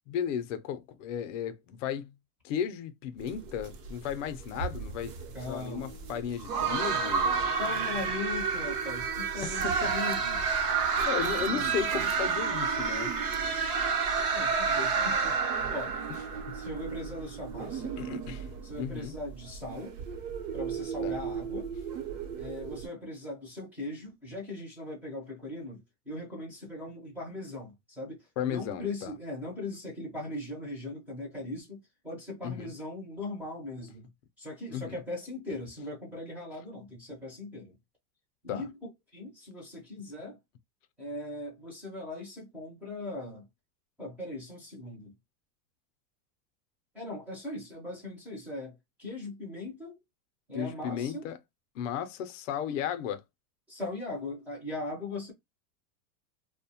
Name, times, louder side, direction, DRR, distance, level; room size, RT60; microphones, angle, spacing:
voice 1, 0.1-2.1 2.4-5.1 5.5-7.5 9.4-9.9 10.7-13.1 16.5-16.6 18.0-19.1 21.0-21.2 28.4-29.1 32.4-32.7 34.7-35.0 38.5-38.6 50.5-51.4 51.7-53.2, left 8 dB, 50° left, 0.5 m, -35 dB
sound 1, 3.2-22.9, right 5 dB, 65° right, 0.8 m, -31 dB
voice 2, 5.3-5.9 7.6-10.4 11.3-11.7 14.3-15.4 15.7-16.0 16.5-18.0 18.6-20.0 20.5-21.7 22.3-34.1 34.4-37.8 38.4-40.4 41.0-43.5 44.0-45.1 46.9-50.0 50.5-51.2 53.7-55.3, left 2 dB, 5° right, 0.4 m, -39 dB
2.6 x 2.1 x 2.7 m
supercardioid pair, 160°, 49 cm